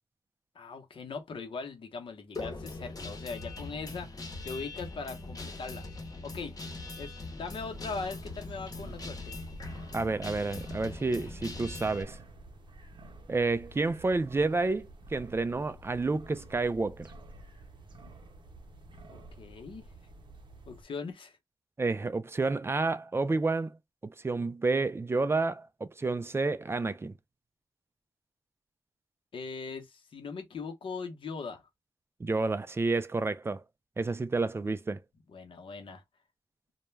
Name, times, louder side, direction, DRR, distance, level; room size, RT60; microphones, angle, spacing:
voice 1, 0.5-5.8 6.2-6.5 7.0-9.4 19.1-19.8 20.7-21.4 29.3-31.6 35.3-36.0, left 4 dB, 85° left, 0.8 m, -40 dB
Guitar, 2.4-12.0, left 2 dB, 45° left, 0.8 m, -41 dB
sound 1, 7.5-20.8, right 2 dB, 65° right, 0.6 m, -50 dB
voice 2, 9.9-12.2 13.3-17.1 21.8-23.7 24.0-27.1 32.2-33.6 34.0-35.0, right 3 dB, 30° right, 0.3 m, -30 dB
2.2 x 2.1 x 3.1 m
wide cardioid pair, 80°, 9 cm